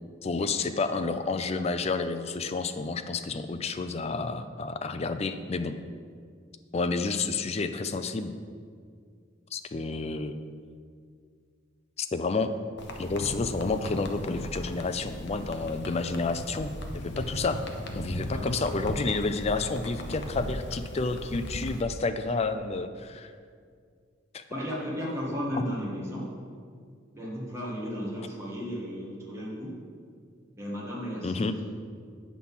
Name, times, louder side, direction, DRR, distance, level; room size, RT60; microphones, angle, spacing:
voice 1, 0.2-5.8 6.7-8.3 9.5-10.4 12.0-12.5 13.0-17.6 17.9-23.3 24.3-24.4 25.5-25.6 31.2-31.6, left 3 dB, 35° left, 9 dB, 0.5 m, -30 dB
sound 1, 12.8-21.8, equal, 60° left, 0.9 m, -38 dB
voice 2, 24.5-26.3 27.1-29.7 30.6-31.6, equal, 15° right, -6 dB, 1.8 m, -34 dB
8.6 x 6.1 x 5.6 m, 2.1 s
head